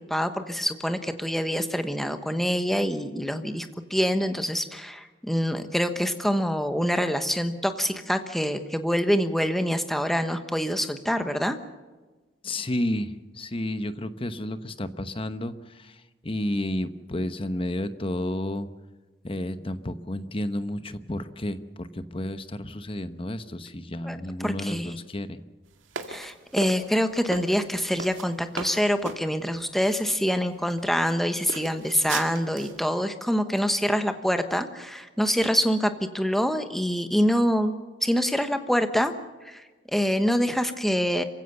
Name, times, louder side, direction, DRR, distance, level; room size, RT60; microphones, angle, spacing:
voice 1, 0.0-11.6 24.0-24.2 24.4-25.0 26.1-37.7 38.0-39.1 39.4-39.6 39.9-41.2, equal, ahead, 8 dB, 1.2 m, -25 dB
voice 2, 12.4-15.9 16.2-18.7 19.2-25.4, left 1 dB, 30° left, 11 dB, 1.0 m, -31 dB
sound 1, 25.9-29.2 30.0-30.1 30.7-31.1 31.5-32.8, right 4 dB, 85° right, 2.1 m, -36 dB
26.0 x 16.0 x 6.8 m, 1.3 s
head